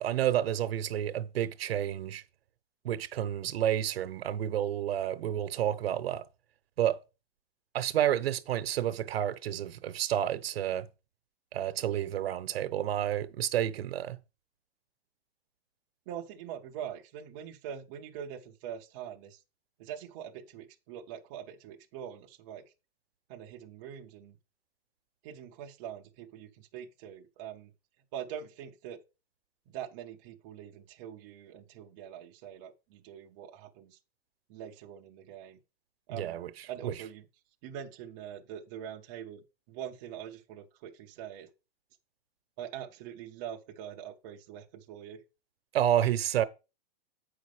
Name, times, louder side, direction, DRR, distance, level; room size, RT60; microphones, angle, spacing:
voice 1, 0.0-2.2 2.8-6.2 6.8-7.0 7.7-10.9 11.5-14.2 36.1-36.5 36.8-37.0 45.7-46.4, right 11 dB, 75° right, 0.9 m, -30 dB
voice 2, 16.1-19.4 19.8-22.7 23.3-24.4 25.2-27.7 28.1-29.0 29.7-34.0 34.5-35.6 36.1-36.4 36.7-37.2 37.6-41.5 42.6-45.2, right 9 dB, 20° right, 0.5 m, -43 dB
8.2 x 5.2 x 4.8 m
supercardioid pair, 170°, 30 cm